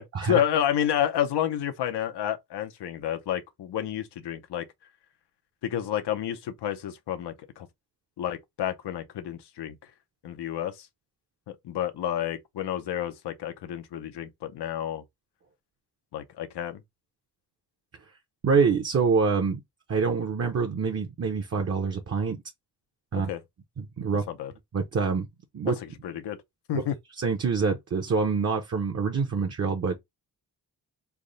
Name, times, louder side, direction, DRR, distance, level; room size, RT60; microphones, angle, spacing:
voice 1, 0.0-4.7 5.6-7.7 8.2-9.7 10.2-10.9 11.5-15.0 16.1-16.8 23.3-23.4 24.3-24.5 26.0-26.4 26.7-26.9, left 10 dB, 90° left, 0.7 m, -30 dB
voice 2, 18.4-19.6 19.9-22.4 23.1-23.3 23.8-24.3 24.7-25.3 25.5-25.8 27.2-30.0, right 5 dB, 40° right, 0.7 m, -26 dB
3.4 x 2.1 x 3.8 m
wide cardioid pair, 120°, 40 cm